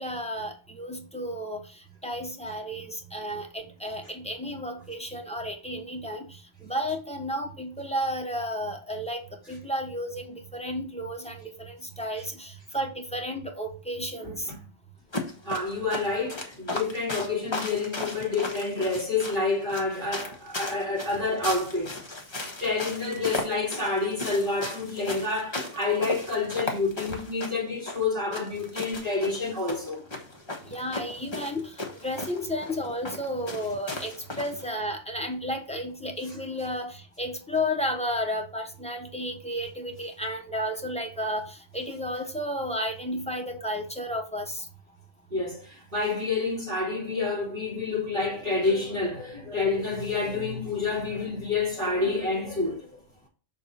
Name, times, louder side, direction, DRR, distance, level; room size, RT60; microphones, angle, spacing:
voice 1, 0.0-9.2 9.5-14.5 30.7-31.7 32.0-44.7, equal, 5° left, 0.8 m, -32 dB
voice 2, 14.2-14.6 15.4-22.0 22.3-30.0 36.2-36.4 45.3-53.0, left 3 dB, 40° right, 2.5 m, -28 dB
sound 1, 15.1-34.7, left 2 dB, 25° left, 1.2 m, -36 dB
6.6 x 3.6 x 4.1 m
omnidirectional pair, 1.3 m